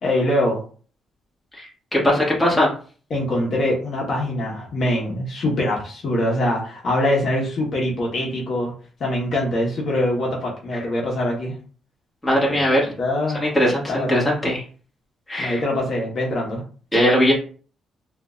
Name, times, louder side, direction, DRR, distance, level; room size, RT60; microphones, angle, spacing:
voice 1, 0.0-0.6 3.1-8.7 9.0-11.6 12.5-12.6 13.0-13.6 13.9-14.4 15.4-16.6, left 1 dB, 55° left, -3 dB, 1.3 m, -23 dB
voice 2, 2.0-2.7 12.2-12.9 13.4-14.6 15.3-15.6 16.9-17.3, equal, 15° left, -5 dB, 1.7 m, -19 dB
3.7 x 2.7 x 2.4 m, 0.40 s
cardioid pair, 90°, 0 cm